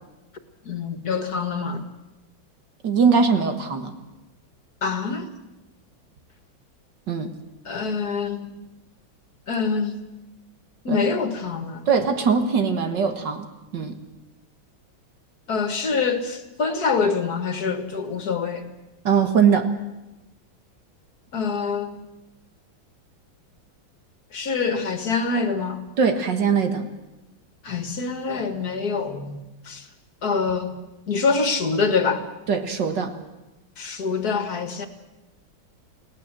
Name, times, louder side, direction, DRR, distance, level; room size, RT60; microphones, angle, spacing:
voice 1, 0.7-1.8 4.8-5.3 7.7-8.6 9.5-10.0 10.8-11.8 15.5-18.7 21.3-22.0 24.3-25.8 27.6-29.8 30.2-30.7 31.1-32.2 33.8-34.9, left 4 dB, 50° left, 2.2 m, -25 dB
voice 2, 2.8-3.9 7.1-7.3 10.9-11.0 11.9-13.5 13.7-14.0 19.0-19.7 26.0-26.9 32.5-33.1, right 6 dB, 60° right, 2.2 m, -21 dB
29.0 x 18.0 x 7.5 m
omnidirectional pair, 2.2 m